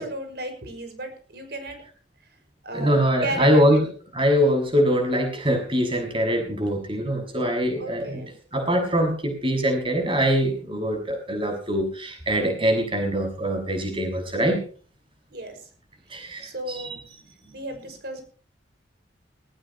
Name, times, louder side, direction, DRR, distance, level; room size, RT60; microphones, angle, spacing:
voice 1, 0.0-1.8 2.6-3.8 7.8-8.3 15.3-15.7 16.4-17.0 17.5-18.2, right 1 dB, 60° right, 6 dB, 5.8 m, -34 dB
voice 2, 2.7-3.8 4.1-8.2 8.5-14.6 16.1-16.8, equal, 30° right, 4 dB, 6.8 m, -23 dB
19.0 x 19.0 x 3.1 m, 0.41 s
head